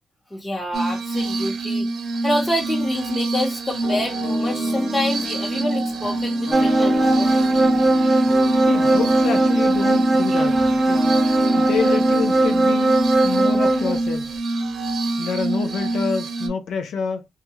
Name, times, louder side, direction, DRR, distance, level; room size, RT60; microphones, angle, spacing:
voice 1, 0.3-1.9 2.2-7.3, left 1 dB, 20° left, 0.8 m, -27 dB
Glass, 0.7-16.5, right 2 dB, 65° right, 0.7 m, -26 dB
sound 1, 3.8-12.8, left 3 dB, 60° left, 0.8 m, -33 dB
sound 2, 6.5-14.0, right 1 dB, 30° right, 0.6 m, -19 dB
voice 2, 8.6-11.0 11.6-14.3 15.2-17.3, left 6 dB, 80° left, 0.4 m, -28 dB
2.2 x 2.2 x 2.9 m
supercardioid pair, 55°, 0 cm